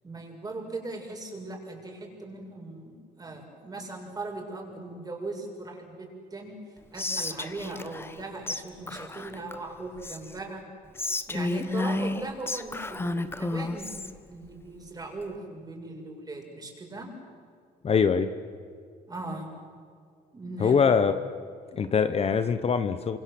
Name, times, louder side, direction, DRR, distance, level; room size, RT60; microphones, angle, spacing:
voice 1, 0.0-6.6 6.9-10.6 11.3-17.1 19.1-19.5 20.3-20.8, right 2 dB, 25° right, 1 dB, 6.9 m, -39 dB
Whispering, 7.0-8.2 8.5-8.6 8.9-10.4 10.9-14.1, left 2 dB, 15° left, 1.4 m, -32 dB
voice 2, 17.8-18.3 20.6-21.1 21.7-23.2, left 6 dB, 35° left, 10 dB, 1.2 m, -23 dB
27.5 x 26.0 x 7.9 m, 2.2 s
cardioid pair, 110°, 17 cm